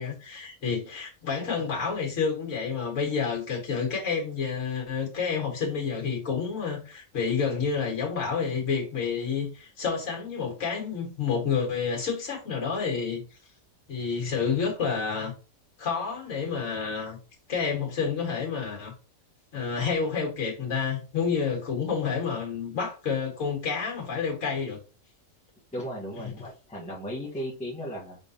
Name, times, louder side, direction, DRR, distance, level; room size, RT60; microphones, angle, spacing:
voice 1, 0.0-13.2 13.9-15.3 15.8-17.2 17.5-18.9 19.5-24.8, left 6 dB, 60° left, 1.8 m, -29 dB
voice 2, 25.7-28.2, equal, 5° left, 1.1 m, -36 dB
4.8 x 3.7 x 2.7 m
omnidirectional pair, 1.5 m